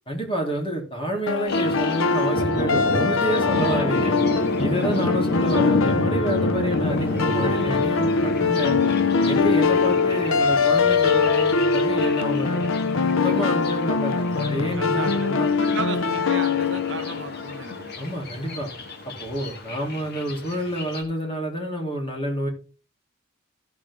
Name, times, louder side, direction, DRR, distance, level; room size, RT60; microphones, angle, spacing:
voice 1, 0.1-4.2 4.6-8.8 9.2-12.6 12.9-15.5 18.0-18.7 19.2-22.5, equal, 25° left, 0 dB, 3.3 m, -29 dB
sound 1, 1.3-18.2, left 4 dB, 80° left, 0.6 m, -22 dB
Thunder, 1.5-21.0, left 1 dB, 55° left, 1.8 m, -31 dB
voice 2, 14.8-17.9, right 4 dB, 65° right, 12 dB, 0.7 m, -34 dB
16.5 x 6.4 x 3.7 m, 0.36 s
head